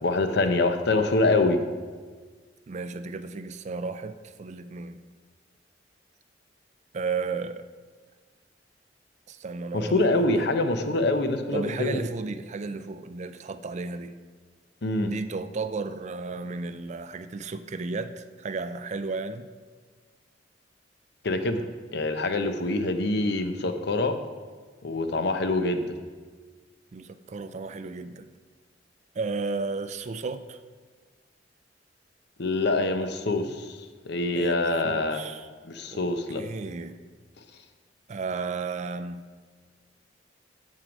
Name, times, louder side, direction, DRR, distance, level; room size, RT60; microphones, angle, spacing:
voice 1, 0.0-1.6 9.7-12.0 14.8-15.1 21.2-21.7 21.9-24.2 24.8-25.9 32.4-33.8 34.0-35.2 35.6-36.4, left 2 dB, 65° left, 8 dB, 0.7 m, -25 dB
voice 2, 2.7-5.0 6.9-7.7 9.3-10.3 11.5-14.1 15.0-19.5 26.9-28.3 29.1-30.6 33.4-33.5 34.4-35.5 35.9-36.1 36.3-37.0 38.1-39.3, right 4 dB, 40° right, 10 dB, 0.4 m, -33 dB
7.6 x 7.4 x 5.2 m, 1.5 s
head